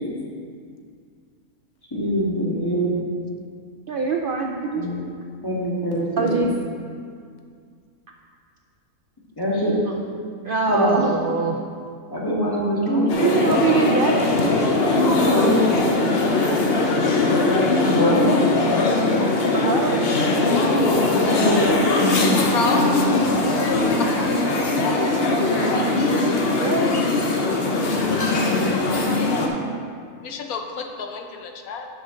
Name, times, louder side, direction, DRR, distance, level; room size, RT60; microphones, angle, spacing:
voice 1, 1.9-2.9 4.7-5.0 5.4-6.3 9.4-9.7 10.7-11.0 12.1-13.1 15.1-15.6 17.8-18.3 21.1-22.4 22.7-23.2, equal, 15° left, -5 dB, 1.7 m, -23 dB
voice 2, 3.9-4.9 6.2-6.6 10.4-11.6 12.9-14.5 19.5-20.0 26.6-27.0 28.8-29.0, right 4 dB, 85° right, 2 dB, 0.4 m, -24 dB
sound 1, 13.1-29.5, left 2 dB, 50° left, 1.0 m, -20 dB
voice 3, 22.3-22.8 30.2-31.9, left 4 dB, 75° left, 4 dB, 1.2 m, -28 dB
12.5 x 5.6 x 3.8 m, 2.2 s
omnidirectional pair, 1.6 m